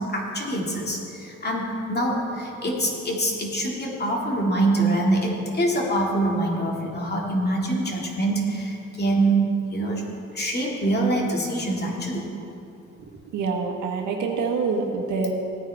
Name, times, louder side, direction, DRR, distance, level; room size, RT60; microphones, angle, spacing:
voice 1, 0.0-9.4 9.7-10.1 10.3-12.3, right 1 dB, 35° left, -2 dB, 2.4 m, -25 dB
voice 2, 13.3-15.3, right 4 dB, 80° right, 1 dB, 1.6 m, -26 dB
16.0 x 9.2 x 3.6 m, 2.8 s
cardioid pair, 90°, 30 cm